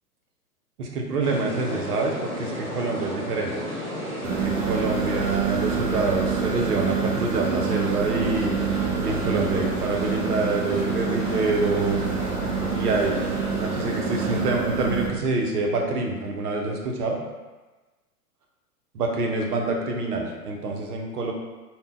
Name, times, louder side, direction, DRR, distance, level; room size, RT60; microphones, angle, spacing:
voice 1, 0.8-3.5 4.4-8.6 9.0-12.0 12.6-13.2 13.6-17.2 18.9-21.3, right 3 dB, 75° right, 1 dB, 0.8 m, -26 dB
sound 1, 1.2-14.4, equal, 10° left, 1.1 m, -32 dB
sound 2, 4.2-15.1, right 7 dB, 35° right, 0.8 m, -27 dB
2.7 x 2.2 x 3.7 m, 1.2 s
figure-of-eight pair, 105°, 47 cm